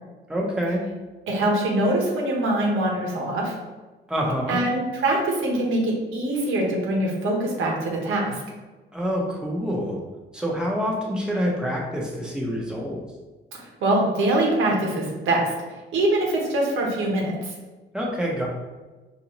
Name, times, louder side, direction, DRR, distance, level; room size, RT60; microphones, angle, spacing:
voice 1, 0.3-0.8 4.1-4.6 8.9-10.0 10.3-13.0 17.9-18.5, equal, 5° right, -3 dB, 0.9 m, -26 dB
voice 2, 1.3-3.5 4.5-8.4 13.5-15.5 15.9-17.5, right 1 dB, 80° right, -1 dB, 1.0 m, -23 dB
4.6 x 2.7 x 3.0 m, 1.2 s
cardioid pair, 90°, 20 cm